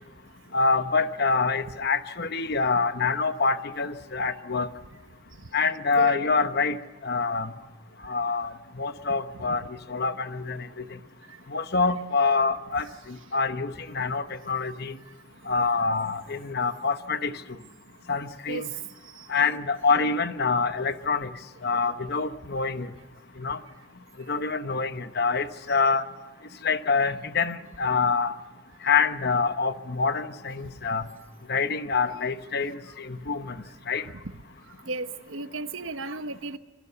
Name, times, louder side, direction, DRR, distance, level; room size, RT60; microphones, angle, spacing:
voice 1, 0.5-4.7 5.5-6.8 7.0-7.5 8.0-9.6 9.9-10.7 11.5-15.0 15.5-17.3 18.1-18.7 19.3-21.3 21.6-22.9 23.4-23.6 24.3-26.1 26.6-28.3 28.8-31.0 31.5-33.5 33.9-34.1, left 4 dB, 50° left, 10 dB, 1.0 m, -26 dB
voice 2, 34.9-36.6, right 3 dB, 65° right, 10 dB, 1.1 m, -34 dB
27.0 x 22.5 x 6.9 m, 1.2 s
head